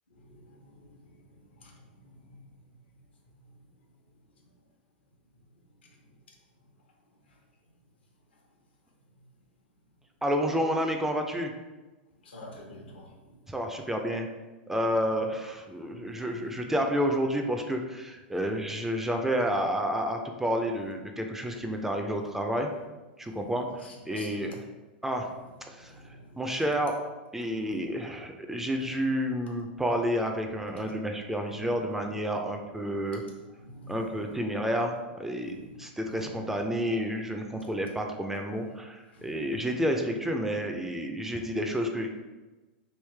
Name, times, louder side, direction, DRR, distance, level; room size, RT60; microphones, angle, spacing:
voice 1, 10.2-11.5 13.5-14.3 14.7-22.7 23.2-24.6 25.0-25.3 25.6-25.9 26.4-26.9 27.3-33.2 33.9-42.1, equal, 5° right, 3 dB, 0.4 m, -30 dB
voice 2, 12.2-13.0 15.9-16.6 21.5-21.6 23.2-23.4 23.8-24.4 25.9-26.4 27.4-27.8 31.4-31.5 32.8-33.2 33.6-34.3 35.4-35.7 36.0-36.4 39.1-39.7 41.3-41.6, equal, 90° left, 0 dB, 1.0 m, -48 dB
3.2 x 3.0 x 3.3 m, 1.2 s
hypercardioid pair, 115°, 6 cm